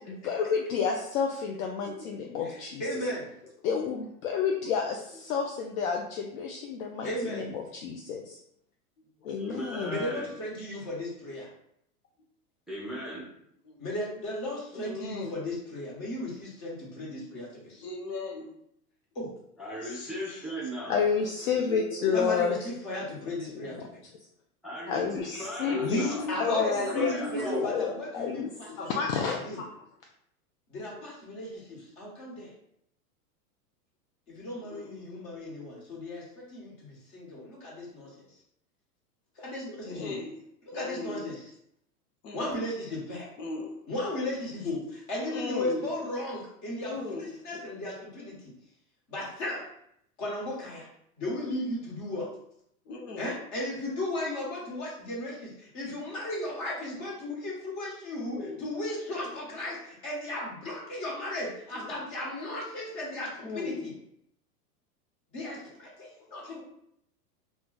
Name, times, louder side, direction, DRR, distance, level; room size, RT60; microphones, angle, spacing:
voice 1, 0.1-2.8 3.6-8.4 9.2-10.0 20.9-22.5 23.5-23.9 24.1-24.3 24.9-26.0 26.4-26.6 26.9-27.2 27.6-29.9, left 6 dB, 60° left, 1 dB, 0.5 m, -30 dB
voice 2, 2.8-3.3 7.0-7.4 9.9-11.5 13.8-17.9 19.1-19.3 22.1-23.9 25.8-29.0 29.4-29.6 30.7-32.5 34.3-38.3 39.4-40.2 40.7-41.5 42.3-43.3 43.9-48.5 49.1-49.7 50.2-50.9 51.2-52.3 53.2-63.9 65.3-66.6, left 1 dB, 40° left, -4 dB, 1.4 m, -35 dB
voice 3, 9.4-10.3 12.7-13.3 19.6-21.0 24.6-26.2 26.9-27.8, equal, ahead, -7 dB, 0.5 m, -37 dB
voice 4, 14.7-15.4 17.8-18.5 19.8-20.2 21.7-22.0 25.6-28.0 34.6-34.8 39.8-40.3 40.7-41.2 42.2-42.5 43.4-43.8 45.3-45.8 46.8-47.6 52.9-53.3 58.3-58.6 61.7-62.0 63.4-63.8, left 4 dB, 90° left, 1 dB, 0.8 m, -36 dB
2.4 x 2.2 x 3.8 m, 0.73 s
hypercardioid pair, 115°, 46 cm